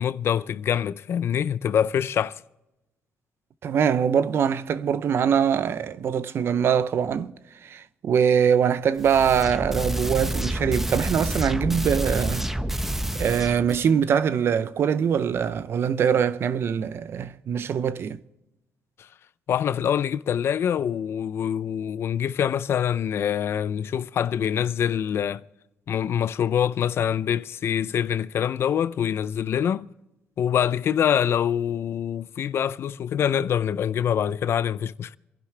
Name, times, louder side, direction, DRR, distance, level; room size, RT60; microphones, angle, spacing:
voice 1, 0.0-2.4 19.5-25.4 25.9-29.9 30.4-35.2, left 9 dB, 60° left, 0.5 m, -25 dB
voice 2, 3.6-7.3 7.6-12.5 13.1-18.2, right 7 dB, 55° right, 0.7 m, -23 dB
sound 1, 9.0-13.8, right 1 dB, 5° right, 0.9 m, -28 dB
27.5 x 11.0 x 3.3 m
cardioid pair, 90°, 5 cm